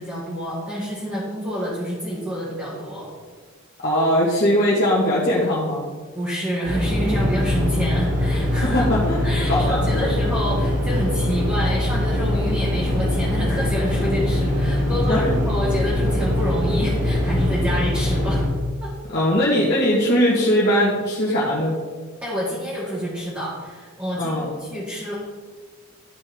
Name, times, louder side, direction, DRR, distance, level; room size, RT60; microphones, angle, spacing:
voice 1, 0.0-3.1 6.1-8.9 9.2-18.4 18.8-18.9 22.2-25.1, equal, 10° right, -9 dB, 1.9 m, -28 dB
voice 2, 3.8-5.8 8.6-10.1 15.1-15.3 19.1-21.8 24.2-24.5, equal, 50° left, -8 dB, 1.6 m, -20 dB
sound 1, 6.6-18.5, left 1 dB, 35° right, 2.0 m, -22 dB
12.0 x 5.4 x 3.6 m, 1.5 s
head